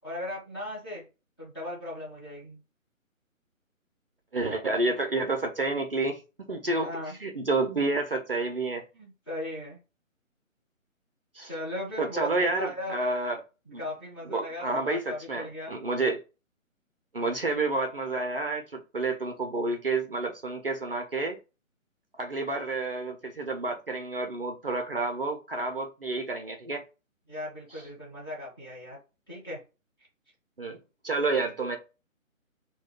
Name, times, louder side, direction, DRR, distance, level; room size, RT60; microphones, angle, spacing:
voice 1, 0.0-1.1 1.4-2.6 6.8-7.2 8.9-9.8 11.4-12.9 13.8-15.8 27.3-29.0 29.3-29.6, left 1 dB, 20° left, 0.6 m, -37 dB
voice 2, 4.3-6.2 6.5-6.9 7.2-8.8 11.3-11.5 12.0-13.4 13.7-13.8 14.3-16.2 17.1-21.4 22.2-26.8 27.7-27.8 30.6-30.8 31.0-31.8, right 3 dB, 45° right, 0.4 m, -29 dB
2.3 x 2.2 x 3.4 m
figure-of-eight pair, 140°, 41 cm